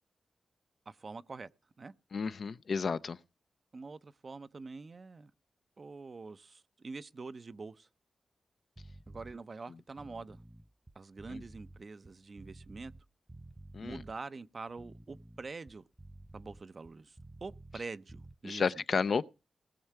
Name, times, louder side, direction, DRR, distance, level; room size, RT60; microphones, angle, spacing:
voice 1, 0.9-1.5 1.8-1.9 3.7-5.3 5.8-7.9 9.1-10.4 10.9-12.9 13.8-15.8 16.3-18.8, right 4 dB, 50° right, 0.6 m, -45 dB
voice 2, 2.1-3.2 11.3-11.4 13.7-14.0 18.4-19.3, left 5 dB, 65° left, 0.5 m, -32 dB
sound 1, 8.8-9.4 9.9-13.0 13.3-14.2 14.7-17.8 18.1-18.4, right 1 dB, 15° right, 0.6 m, -52 dB
19.0 x 6.4 x 4.6 m
cardioid pair, 55°, 0 cm